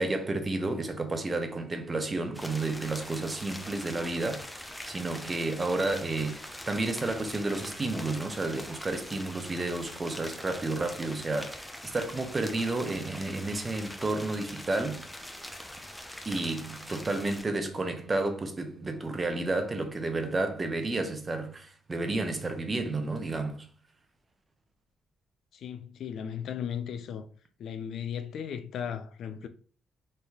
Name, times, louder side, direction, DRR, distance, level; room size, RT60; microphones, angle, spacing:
voice 1, 0.0-4.5 4.9-15.1 16.3-23.7, right 2 dB, 25° right, 0.7 m, -31 dB
sound 1, 2.3-17.4, left 1 dB, 5° left, 0.4 m, -43 dB
voice 2, 25.5-27.3 27.6-29.5, left 8 dB, 70° left, 0.4 m, -36 dB
3.2 x 2.7 x 3.5 m
cardioid pair, 90°, 0 cm